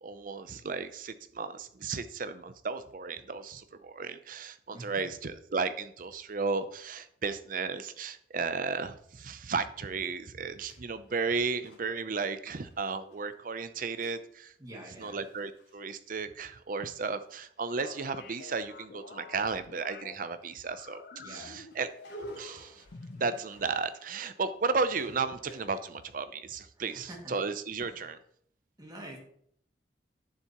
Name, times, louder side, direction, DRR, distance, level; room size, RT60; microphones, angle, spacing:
voice 1, 0.0-21.0 21.3-21.9 22.4-22.8 23.2-28.2, right 4 dB, 50° right, 12 dB, 0.6 m, -34 dB
voice 2, 4.7-5.0 14.6-15.2 21.2-21.6 26.8-27.4 27.8-28.1 28.8-29.2, right 1 dB, 20° right, -1 dB, 2.2 m, -47 dB
sound 1, 9.2-9.3 9.7-13.2 13.6-14.3 14.5-14.6 14.8-15.8 16.2-16.5 16.8-20.1 20.4-26.1, equal, 75° left, 3.2 m, -52 dB
sound 2, 17.8-20.2 20.6-22.5 22.9-23.4, left 4 dB, 55° left, 0.7 m, -49 dB
10.5 x 7.1 x 3.0 m, 0.66 s
head